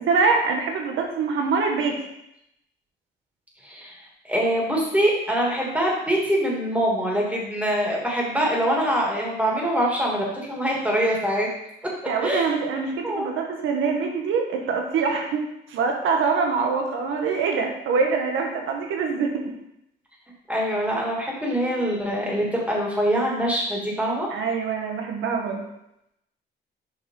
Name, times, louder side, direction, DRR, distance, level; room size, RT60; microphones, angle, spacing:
voice 1, 0.0-2.0 12.1-19.5 21.5-21.6 24.3-25.6, right 5 dB, 85° right, 2 dB, 1.3 m, -24 dB
voice 2, 3.6-4.0 4.2-11.5 12.2-12.4 13.0-13.3 20.5-24.3, equal, 5° right, -3 dB, 2.6 m, -24 dB
7.5 x 5.1 x 3.9 m, 0.82 s
cardioid pair, 90°, 20 cm